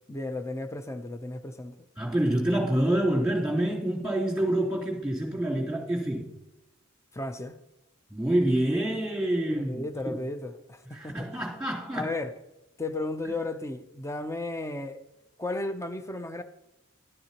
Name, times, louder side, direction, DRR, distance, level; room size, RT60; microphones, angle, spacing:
voice 1, 0.1-1.8 7.1-7.6 9.5-11.3 11.9-12.3 12.8-15.0 15.4-16.4, left 2 dB, 15° left, 0.6 m, -34 dB
voice 2, 2.0-6.3 8.1-10.2 10.9-12.0, right 1 dB, 5° right, 3.4 m, -27 dB
12.5 x 11.5 x 2.9 m
head